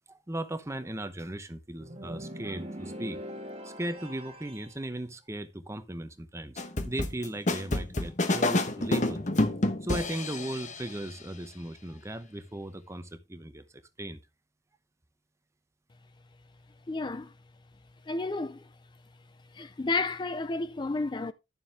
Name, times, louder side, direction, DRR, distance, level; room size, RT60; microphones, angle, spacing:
voice 1, 0.1-3.2 3.6-9.2 9.8-13.6 14.0-14.2, right 1 dB, 15° right, 0.8 m, -37 dB
sound 1, 1.8-4.8, equal, 30° right, 2.0 m, -42 dB
sound 2, 6.6-10.9, left 2 dB, 40° left, 1.1 m, -28 dB
voice 2, 16.9-17.3 18.1-18.7 19.5-21.3, left 3 dB, 25° left, 0.4 m, -31 dB
11.0 x 6.9 x 3.4 m
head